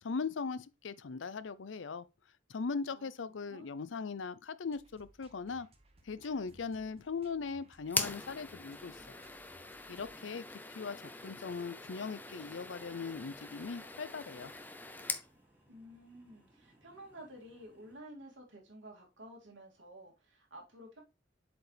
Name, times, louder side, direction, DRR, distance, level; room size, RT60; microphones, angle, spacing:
voice 1, 0.0-2.1 2.5-5.7 6.0-9.3 9.9-10.4 10.8-14.5, left 5 dB, 85° left, 0.5 m, -39 dB
sound 1, 4.6-10.1, right 1 dB, 35° right, 1.2 m, -63 dB
sound 2, 7.9-15.3, left 3 dB, 10° left, 0.6 m, -42 dB
sound 3, 10.2-18.0, equal, 10° right, 2.7 m, -66 dB
voice 2, 15.7-21.0, right 1 dB, 85° right, 2.7 m, -52 dB
7.7 x 4.9 x 3.4 m
head